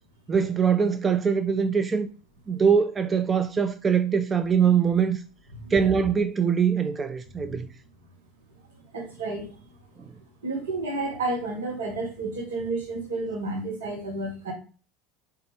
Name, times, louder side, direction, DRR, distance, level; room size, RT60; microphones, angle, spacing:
voice 1, 0.3-2.1 2.5-5.2 5.7-7.7, right 6 dB, 25° right, 0.3 m, -22 dB
voice 2, 8.9-9.5 10.4-14.5, right 2 dB, 70° right, 1.5 m, -31 dB
4.0 x 3.3 x 3.3 m
figure-of-eight pair, 70°, 0 cm